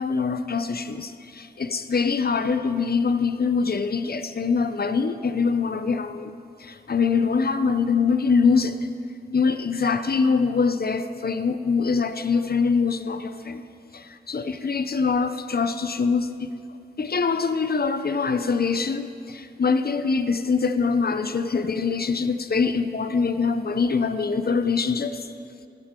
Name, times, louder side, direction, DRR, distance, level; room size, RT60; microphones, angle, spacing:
voice 1, 0.0-8.9 9.3-13.6 13.9-16.5 17.0-25.3, left 5 dB, 60° left, 0.6 m, -24 dB
15.5 x 12.0 x 3.7 m
wide cardioid pair, 70°, 18 cm